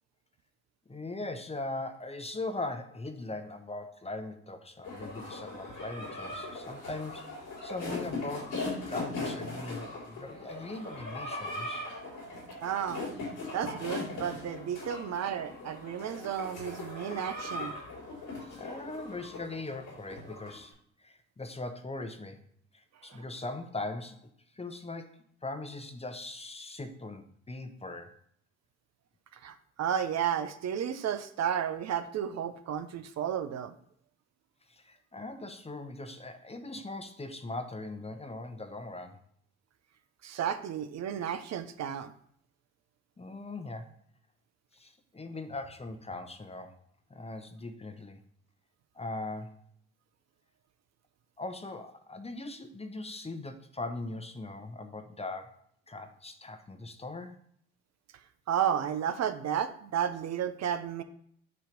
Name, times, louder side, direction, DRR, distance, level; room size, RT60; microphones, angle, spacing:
voice 1, 0.9-8.6 8.9-11.9 18.4-20.7 21.0-22.4 22.7-28.1 34.7-39.2 43.2-43.9 44.7-46.7 47.1-48.2 48.9-49.6 51.4-57.4, left 2 dB, 20° left, 8 dB, 0.9 m, -40 dB
sound 1, 4.8-20.6, left 2 dB, 80° left, 2.9 m, -39 dB
voice 2, 12.6-13.0 13.5-17.8 29.4-33.7 40.2-42.1 58.5-61.0, right 9 dB, 50° right, 10 dB, 0.7 m, -32 dB
7.6 x 3.0 x 5.1 m, 0.64 s
hypercardioid pair, 55°, 34 cm